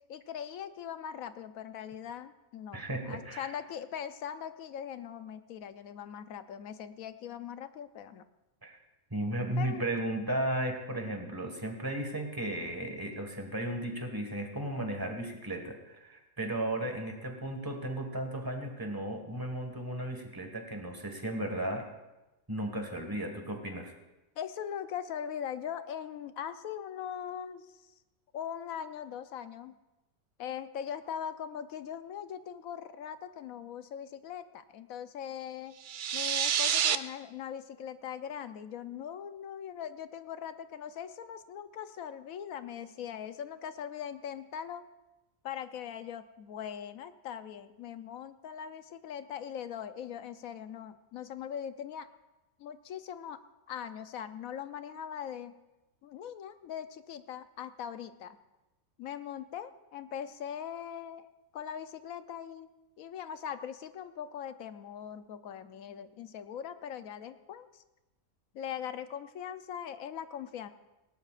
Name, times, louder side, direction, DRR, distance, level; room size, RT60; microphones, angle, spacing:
voice 1, 0.1-8.3 9.6-9.8 24.4-27.9 28.3-29.7 30.4-35.8 36.1-44.8 45.4-52.1 52.6-53.4 53.7-55.5 56.0-58.4 59.0-61.3 61.5-62.7 63.0-67.8 68.5-70.7, left 8 dB, 85° left, 11 dB, 1.1 m, -41 dB
voice 2, 2.7-3.5 8.6-8.8 9.1-21.9 22.5-23.9, right 1 dB, 15° right, 4 dB, 1.6 m, -35 dB
sound 1, 35.8-37.0, right 9 dB, 75° right, 0.4 m, -28 dB
19.5 x 17.5 x 2.5 m, 1.0 s
omnidirectional pair, 1.4 m